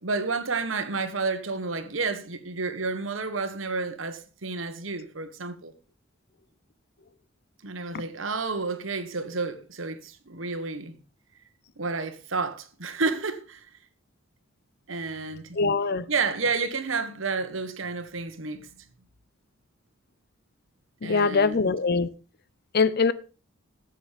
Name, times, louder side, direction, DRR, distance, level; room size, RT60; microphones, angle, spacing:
voice 1, 0.0-5.7 7.6-11.0 11.8-13.7 14.9-15.6 16.1-18.8 21.0-21.7, right 4 dB, 75° right, 1.4 m, -30 dB
voice 2, 15.6-16.1 21.0-22.1 22.7-23.1, left 4 dB, 50° left, 0.7 m, -22 dB
13.0 x 7.5 x 5.2 m
head